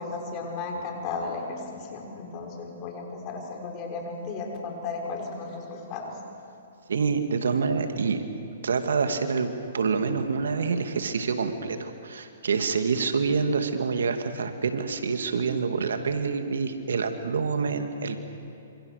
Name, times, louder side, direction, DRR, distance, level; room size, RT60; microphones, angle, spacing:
voice 1, 0.0-6.2, left 3 dB, 35° left, 0 dB, 6.2 m, -35 dB
voice 2, 6.9-8.2 8.6-18.2, right 5 dB, 80° right, 7 dB, 2.2 m, -27 dB
27.5 x 27.0 x 6.6 m, 2.7 s
hypercardioid pair, 135°, 0 cm